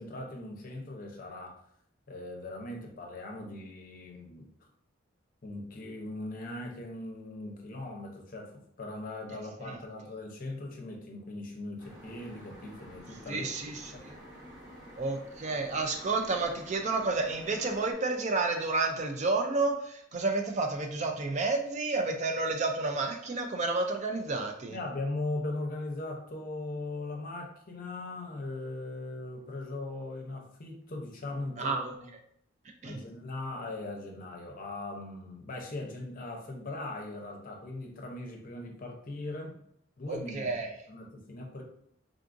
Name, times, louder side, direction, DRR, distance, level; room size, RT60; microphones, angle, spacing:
voice 1, 0.0-1.5 2.1-4.5 5.4-8.5 8.8-14.0 24.7-32.1 32.8-39.5 40.0-40.5 40.9-41.6, left 2 dB, 45° left, 1 dB, 0.6 m, -39 dB
sound 1, 11.8-17.9, equal, 20° right, 0.9 m, -50 dB
voice 2, 13.3-13.8 14.1-14.2 15.0-24.8 31.6-31.9 32.8-33.0 40.1-40.7, right 3 dB, 35° right, 4 dB, 0.4 m, -30 dB
3.6 x 2.4 x 2.5 m, 0.68 s
head